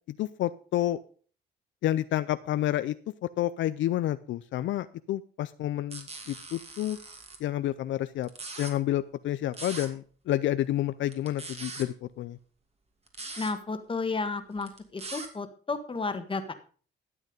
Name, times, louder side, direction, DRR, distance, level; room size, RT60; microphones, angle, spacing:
voice 1, 0.2-1.0 1.8-3.0 3.4-7.0 7.4-8.3 8.6-12.4, left 13 dB, 70° left, 13 dB, 0.5 m, -29 dB
sound 1, 5.9-7.4 8.2-8.7 9.5-9.9 11.1-11.9 13.1-13.5 14.6-15.3, right 3 dB, 30° right, 2.5 m, -41 dB
voice 2, 13.4-16.5, left 3 dB, 25° left, 8 dB, 1.6 m, -32 dB
12.5 x 8.1 x 5.2 m, 0.43 s
cardioid pair, 90°, 20 cm